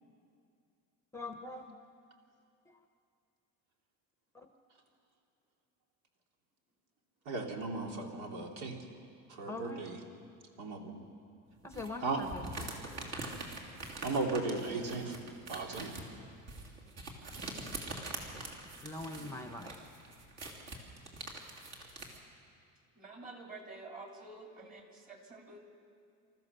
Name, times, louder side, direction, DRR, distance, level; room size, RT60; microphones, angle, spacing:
voice 1, 1.1-1.8 2.7-2.8 4.3-4.5 9.5-9.8 11.6-12.5 16.2-16.4 18.7-19.8, left 2 dB, 10° left, 6 dB, 0.8 m, -43 dB
voice 2, 7.3-8.8 9.4-10.0 10.6-11.0 12.0-12.2 14.0-15.2 15.5-15.9 19.2-19.3, right 3 dB, 75° right, 2 dB, 2.8 m, -36 dB
sound 1, 11.7-22.2, right 2 dB, 50° right, 3.0 m, -44 dB
voice 3, 23.0-25.6, right 3 dB, 25° right, 2 dB, 2.9 m, -49 dB
27.5 x 14.0 x 6.8 m, 2.4 s
cardioid pair, 150°, 34 cm